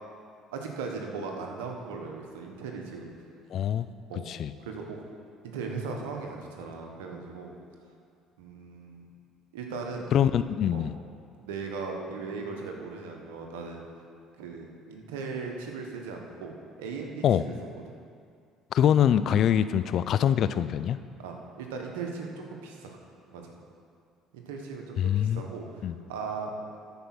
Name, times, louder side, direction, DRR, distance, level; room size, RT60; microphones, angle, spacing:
voice 1, 0.5-3.1 4.1-4.2 4.6-5.0 5.4-7.5 8.4-9.1 9.5-10.1 10.7-10.9 11.4-13.9 14.4-17.2 17.9-18.0 21.2-23.0 23.3-23.5 24.3-25.8 26.1-26.5, right 4 dB, 90° right, 1 dB, 1.3 m, -38 dB
voice 2, 3.5-3.8 4.3-4.5 10.1-10.9 17.2-17.6 18.7-21.0 25.0-25.4 25.8-26.0, left 9 dB, 60° left, 14 dB, 0.4 m, -24 dB
13.0 x 5.1 x 6.0 m, 2.2 s
supercardioid pair, 75°, 0 cm